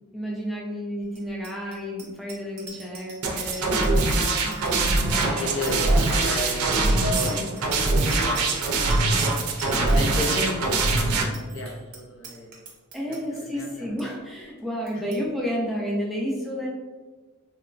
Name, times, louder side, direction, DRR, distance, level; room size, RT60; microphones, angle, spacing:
voice 1, 0.1-3.8 4.4-4.9 6.7-7.5 9.9-10.3 12.9-16.7, equal, ahead, -4 dB, 0.3 m, -31 dB
Bicycle bell, 1.1-13.4 13.8-14.0 14.3-14.6 14.9-15.2, right 4 dB, 45° right, 0.7 m, -43 dB
sound 1, 2.4-2.5 5.1-9.4, equal, 20° left, 0.8 m, -40 dB
sound 2, 3.2-11.2, right 2 dB, 90° right, 0.4 m, -23 dB
voice 2, 5.2-8.6 9.7-12.5 13.1-13.9 14.9-15.0, left 1 dB, 60° left, 0 dB, 0.5 m, -34 dB
2.9 x 2.1 x 2.4 m, 1.3 s
head